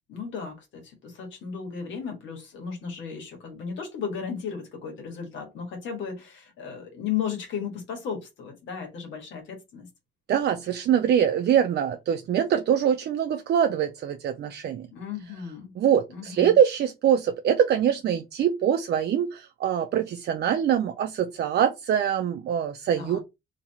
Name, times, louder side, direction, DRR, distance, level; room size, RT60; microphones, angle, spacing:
voice 1, 0.1-9.9 14.9-15.7 16.1-16.6 23.0-23.2, left 7 dB, 85° left, 1.5 m, -35 dB
voice 2, 10.3-14.9 15.8-23.2, right 9 dB, 60° right, 0.4 m, -24 dB
2.9 x 2.9 x 3.9 m
cardioid pair, 85°, 19 cm